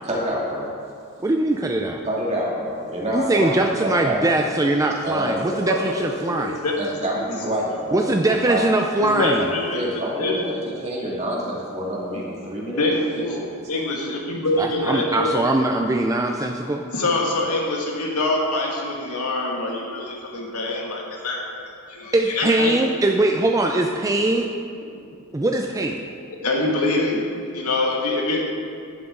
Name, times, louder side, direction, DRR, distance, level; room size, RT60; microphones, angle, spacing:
voice 1, 0.0-0.7 2.1-4.5 5.0-5.6 6.8-8.6 9.7-12.9 13.2-13.6, equal, 30° right, -4 dB, 2.3 m, -27 dB
voice 2, 1.2-2.0 3.1-6.6 7.9-9.5 14.6-16.8 22.1-24.5 25.3-26.0, right 2 dB, 15° right, 3 dB, 0.4 m, -21 dB
voice 3, 5.6-6.7 9.0-9.9 10.2-10.3 12.6-13.4 13.7-15.3 16.9-22.7 26.4-27.2 27.5-28.4, left 2 dB, 90° left, -2 dB, 2.1 m, -25 dB
11.0 x 11.0 x 3.8 m, 2.4 s
head